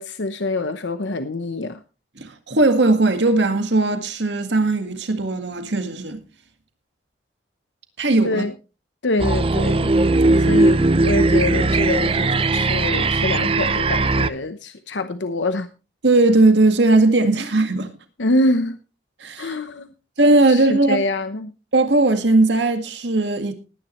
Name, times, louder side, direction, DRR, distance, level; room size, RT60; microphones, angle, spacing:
voice 1, 0.0-1.8 8.2-8.5 9.0-9.9 10.5-15.7 18.2-18.8 19.4-19.9 20.4-21.5, left 2 dB, 90° left, 0.9 m, -25 dB
voice 2, 2.2-6.2 8.0-8.4 16.0-17.9 19.2-19.5 20.2-21.0 21.7-23.5, right 2 dB, 80° right, 1.8 m, -18 dB
sound 1, 9.2-14.3, right 2 dB, 30° right, 0.6 m, -18 dB
19.0 x 10.0 x 3.1 m
head